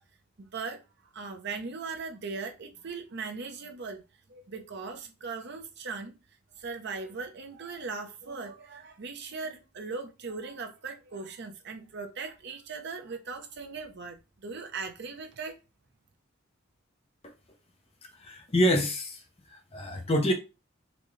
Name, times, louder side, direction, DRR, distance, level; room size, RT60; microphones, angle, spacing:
voice 1, 0.4-0.8 1.1-4.0 4.3-6.1 6.6-15.6, right 4 dB, 60° right, 0.7 m, -39 dB
voice 2, 18.2-19.2 19.5-20.3, equal, 30° left, 0.6 m, -26 dB
4.0 x 2.2 x 3.1 m
head